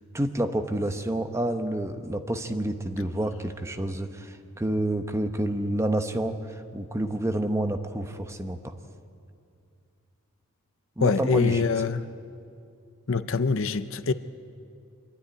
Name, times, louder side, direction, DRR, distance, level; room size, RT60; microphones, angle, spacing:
voice 1, 0.1-8.7 11.0-11.6, right 1 dB, 15° right, 7 dB, 0.9 m, -29 dB
voice 2, 11.0-12.0 13.1-14.1, left 4 dB, 60° left, 12 dB, 0.6 m, -24 dB
24.5 x 12.5 x 9.8 m, 2.4 s
head